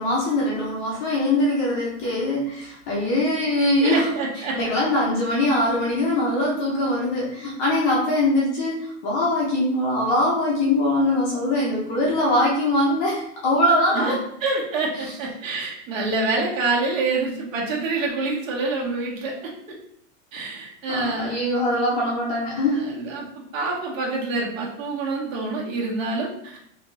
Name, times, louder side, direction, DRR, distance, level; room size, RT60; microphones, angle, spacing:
voice 1, 0.0-4.1 4.5-14.2 15.0-15.1 20.9-22.8, left 1 dB, 20° left, -5 dB, 0.5 m, -22 dB
voice 2, 3.8-4.6 13.9-14.1 14.4-19.5 20.3-21.4 22.7-26.6, right 3 dB, 65° right, -3 dB, 1.8 m, -26 dB
5.6 x 2.7 x 3.2 m, 0.74 s
supercardioid pair, 175°, 41 cm